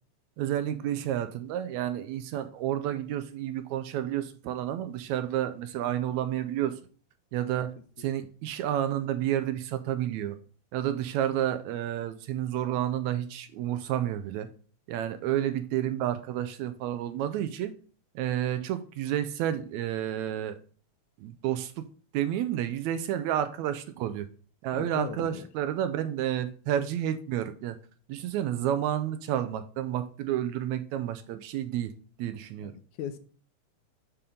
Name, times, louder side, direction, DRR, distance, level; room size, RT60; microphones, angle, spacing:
voice 1, 0.4-6.8 7.3-10.4 10.7-14.5 14.9-17.7 18.2-20.6 21.2-21.8 22.1-24.3 24.6-27.8 28.1-32.7, right 11 dB, 80° right, 1.8 m, -30 dB
voice 2, 24.7-25.5 32.6-32.7 33.0-33.2, left 10 dB, 85° left, 2.0 m, -37 dB
6.9 x 3.6 x 5.2 m
omnidirectional pair, 3.5 m